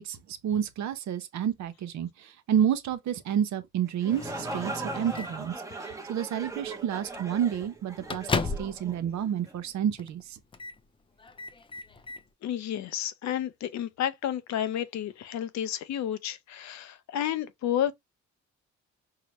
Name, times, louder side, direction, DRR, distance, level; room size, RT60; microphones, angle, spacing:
voice 1, 0.0-10.4, right 9 dB, 70° right, 0.7 m, -30 dB
sound 1, 3.9-9.6, right 3 dB, 10° right, 0.8 m, -39 dB
Microwave oven, 4.1-5.5 6.5-6.7 7.0-7.2 7.5-8.9 9.2-9.3 10.0-10.2 10.5-10.8 11.2-12.2, left 4 dB, 20° left, 0.4 m, -35 dB
voice 2, 12.4-17.9, left 10 dB, 65° left, 0.6 m, -31 dB
4.7 x 2.1 x 2.8 m
cardioid pair, 90°, 30 cm